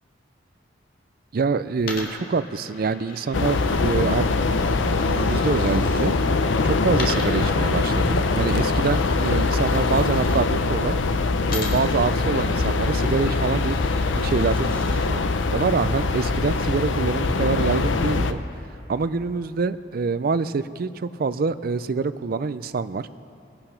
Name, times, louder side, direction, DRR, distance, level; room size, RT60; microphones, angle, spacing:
voice 1, 1.3-4.4 5.0-6.1 6.6-11.0 11.5-13.8 14.1-15.2 15.5-18.4 18.9-23.1, right 4 dB, 50° right, 14 dB, 0.4 m, -25 dB
Coin (dropping), 1.8-6.1 6.9-10.5 11.5-15.1, left 3 dB, 50° left, 2.0 m, -39 dB
sound 1, 3.3-18.3, left 3 dB, 85° left, 0.6 m, -23 dB
20.5 x 8.8 x 5.8 m, 2.9 s
head